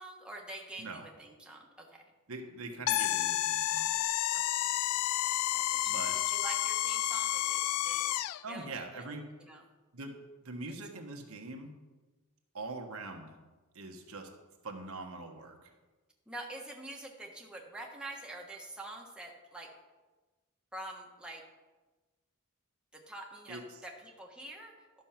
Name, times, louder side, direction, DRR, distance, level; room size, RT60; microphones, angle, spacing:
voice 1, 0.0-2.0 4.3-4.7 5.5-8.1 8.5-9.0 9.4-9.6 16.3-19.7 20.7-21.4 22.9-25.0, right 1 dB, 5° right, -1 dB, 1.4 m, -46 dB
voice 2, 2.3-3.9 5.9-6.2 8.4-9.2 9.9-10.2 10.4-11.7 12.5-13.3 13.7-14.3 14.6-15.7 23.5-23.6, right 2 dB, 75° right, 3 dB, 1.3 m, -43 dB
sound 1, 2.9-8.4, left 13 dB, 80° left, 0.3 m, -30 dB
12.0 x 6.2 x 5.9 m, 1.2 s
head